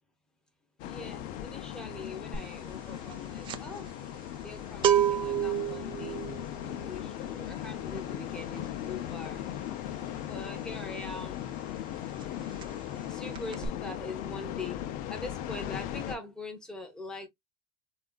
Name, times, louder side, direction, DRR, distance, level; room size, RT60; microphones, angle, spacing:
sound 1, 0.8-16.2, left 11 dB, 55° left, 0.5 m, -38 dB
voice 1, 0.8-3.9 4.4-6.2 6.9-9.4 10.2-11.4 12.9-14.8 15.1-17.3, left 2 dB, 5° left, 0.8 m, -42 dB
sound 2, 2.3-2.6 2.9-11.4 11.7-11.9 12.2-13.0 13.3-13.7, right 10 dB, 30° right, 0.4 m, -31 dB
3.6 x 2.4 x 2.2 m
cardioid pair, 150°, 17 cm